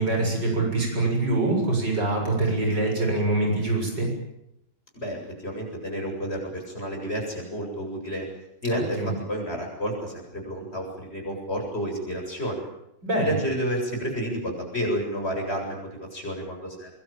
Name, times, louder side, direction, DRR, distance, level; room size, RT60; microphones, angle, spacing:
voice 1, 0.0-4.1 9.0-9.1 13.0-13.3, right 2 dB, 65° right, 1 dB, 7.9 m, -24 dB
voice 2, 5.0-8.3 8.6-12.6 13.2-16.9, equal, 35° left, 1 dB, 8.1 m, -30 dB
24.0 x 22.0 x 9.1 m, 0.82 s
omnidirectional pair, 2.0 m